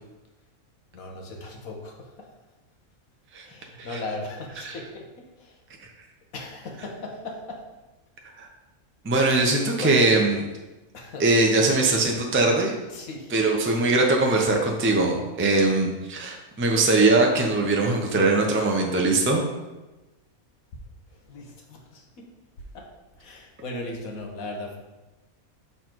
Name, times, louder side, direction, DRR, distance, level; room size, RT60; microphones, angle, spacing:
voice 1, 0.9-2.3 3.4-5.6 6.3-7.6 9.1-9.3 9.8-10.0 10.9-11.3 12.9-13.4 16.6-16.7 21.1-22.3 22.7-22.9 23.2-24.8, left 2 dB, 70° left, 1 dB, 1.5 m, -38 dB
voice 2, 9.0-10.4 11.2-12.7 13.3-19.4, right 2 dB, 15° right, 1 dB, 0.5 m, -21 dB
6.8 x 4.0 x 4.5 m, 1.1 s
omnidirectional pair, 1.5 m